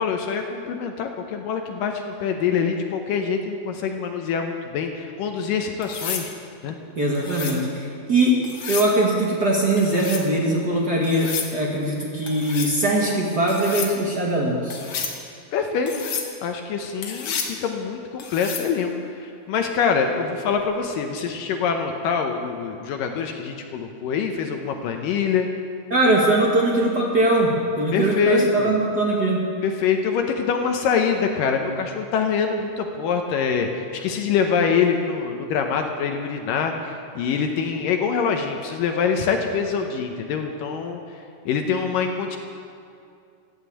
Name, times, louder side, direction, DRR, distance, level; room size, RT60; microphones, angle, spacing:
voice 1, 0.0-6.3 6.6-6.8 15.5-15.9 16.4-25.5 27.9-28.7 29.6-42.4, left 6 dB, 75° left, 4 dB, 2.2 m, -25 dB
sound 1, 5.8-6.3 7.2-7.6 8.4-8.9 9.8-10.3 11.0-11.5 12.3-12.7 13.5-13.9 14.7-15.2 15.9-16.3 17.0-17.6 18.2-18.7 20.6-20.9, left 6 dB, 60° left, 1.8 m, -31 dB
voice 2, 7.0-14.8 25.9-29.4, right 1 dB, 65° right, -3 dB, 0.9 m, -21 dB
15.0 x 9.6 x 8.3 m, 2.5 s
omnidirectional pair, 4.6 m